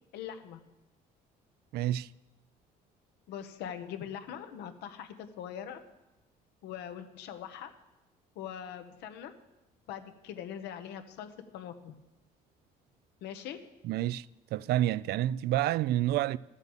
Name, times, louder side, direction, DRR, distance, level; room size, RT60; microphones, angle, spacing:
voice 1, 0.1-0.6 3.3-5.8 6.6-7.7 8.3-9.3 9.9-11.9 13.2-13.6, left 9 dB, 85° left, 1.2 m, -42 dB
voice 2, 1.7-2.1 13.8-14.3 14.5-16.4, right 13 dB, 70° right, 0.4 m, -28 dB
13.0 x 8.1 x 7.2 m
cardioid pair, 110°, 17 cm